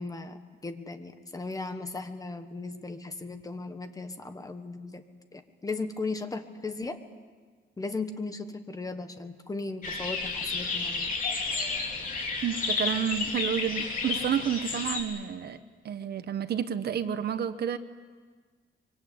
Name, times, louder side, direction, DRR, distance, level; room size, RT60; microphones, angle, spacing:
voice 1, 0.0-5.0 5.3-7.0 7.8-11.1, left 3 dB, 20° left, 8 dB, 1.4 m, -37 dB
sound 1, 9.8-15.0, left 4 dB, 45° left, 3.6 m, -31 dB
voice 2, 12.4-15.6 15.8-17.8, right 8 dB, 55° right, 11 dB, 1.1 m, -30 dB
24.5 x 23.5 x 8.7 m, 1.5 s
wide cardioid pair, 170°, 20 cm